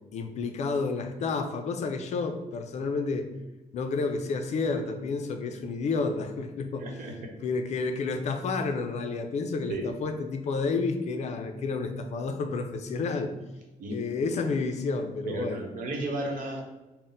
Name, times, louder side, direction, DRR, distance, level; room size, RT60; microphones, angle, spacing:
voice 1, 0.1-3.3 3.7-6.9 7.4-13.3 13.9-15.7, left 4 dB, 55° left, 6 dB, 0.4 m, -30 dB
voice 2, 6.8-7.1 9.7-9.9 13.8-13.9 15.3-16.6, right 2 dB, 75° right, 1 dB, 0.9 m, -33 dB
4.0 x 2.1 x 3.8 m, 1.1 s
cardioid pair, 155°, 14 cm